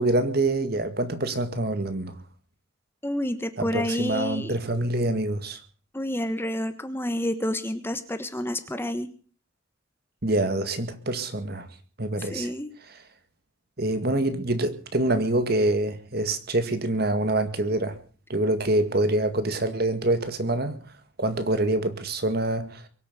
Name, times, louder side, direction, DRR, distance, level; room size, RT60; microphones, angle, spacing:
voice 1, 0.0-2.2 3.6-5.6 10.2-11.7 12.0-12.5 13.8-18.0 18.3-20.8 21.2-22.9, right 2 dB, 50° right, 2.0 m, -25 dB
voice 2, 3.0-4.5 5.9-9.1 12.2-12.7, left 1 dB, 10° left, 1.2 m, -29 dB
23.0 x 8.5 x 6.8 m
head